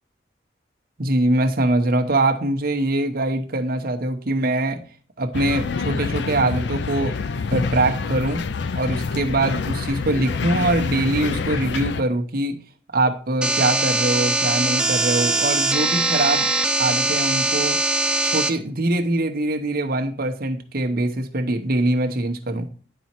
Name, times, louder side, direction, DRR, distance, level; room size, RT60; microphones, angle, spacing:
voice 1, 1.0-4.8 5.2-7.1 7.5-8.4 8.7-12.6 12.9-16.5 16.8-17.8 18.2-22.7, right 2 dB, 50° right, 4 dB, 0.9 m, -23 dB
sound 1, 5.3-12.0, left 4 dB, 60° left, 0.4 m, -26 dB
sound 2, 13.4-18.5, right 2 dB, 5° right, 0.4 m, -21 dB
10.5 x 4.2 x 4.4 m, 0.41 s
head